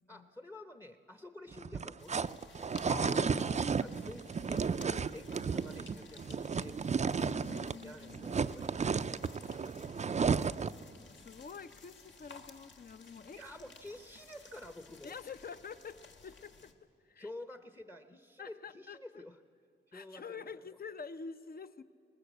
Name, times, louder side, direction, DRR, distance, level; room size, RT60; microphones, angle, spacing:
voice 1, 0.1-2.4 3.8-10.0 13.3-15.2 17.2-19.4 19.9-20.4 20.7-20.8, left 1 dB, 15° left, 8 dB, 0.9 m, -50 dB
sound 1, 1.5-7.8 8.1-10.8, right 6 dB, 35° right, 0.5 m, -33 dB
sound 2, 2.0-16.7, left 4 dB, 65° left, 1.6 m, -57 dB
voice 2, 2.8-3.9 7.2-8.4 10.7-13.4 15.0-16.7 17.0-17.3 18.4-19.2 19.9-21.8, left 6 dB, 45° left, 12 dB, 0.8 m, -47 dB
21.5 x 19.5 x 8.1 m, 2.7 s
cardioid pair, 90°, 21 cm